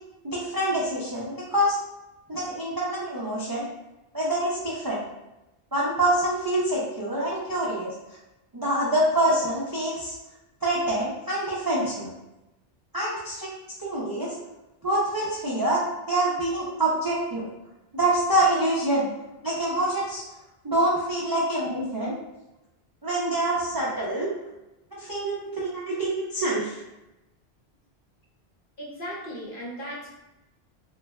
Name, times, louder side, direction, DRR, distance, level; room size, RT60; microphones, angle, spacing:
voice 1, 0.2-1.8 2.3-3.7 4.1-5.0 5.7-7.9 8.5-10.2 10.6-12.1 12.9-13.5 13.8-14.3 14.8-15.8 16.1-17.5 17.9-19.1 19.4-20.2 20.6-22.2 23.0-24.3 24.9-26.8, right 1 dB, 35° right, -7 dB, 0.3 m, -26 dB
voice 2, 28.8-30.1, equal, 55° left, -4 dB, 0.9 m, -37 dB
3.1 x 2.4 x 2.2 m, 0.97 s
omnidirectional pair, 1.1 m